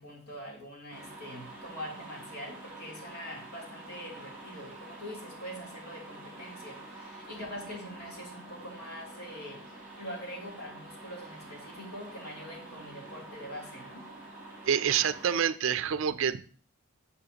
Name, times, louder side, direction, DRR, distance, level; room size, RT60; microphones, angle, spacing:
voice 1, 0.0-9.6 10.0-14.1, equal, 80° left, -2 dB, 3.1 m, -43 dB
sound 1, 0.9-15.4, right 2 dB, 5° right, 4.3 m, -47 dB
voice 2, 14.7-16.4, right 8 dB, 60° right, 12 dB, 0.4 m, -27 dB
12.0 x 7.0 x 2.8 m, 0.43 s
head